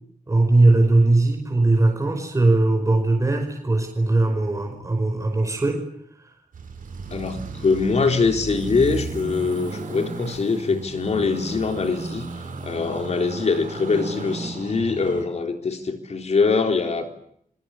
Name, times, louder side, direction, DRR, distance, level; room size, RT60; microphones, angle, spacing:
voice 1, 0.3-5.8, right 2 dB, 25° right, 3 dB, 5.3 m, -19 dB
sound 1, 6.5-15.2, right 4 dB, 85° right, 6.8 m, -34 dB
voice 2, 7.1-12.3 12.6-17.1, left 4 dB, 55° left, 5 dB, 3.9 m, -23 dB
28.5 x 24.0 x 8.5 m, 0.70 s
wide cardioid pair, 155°, 14 cm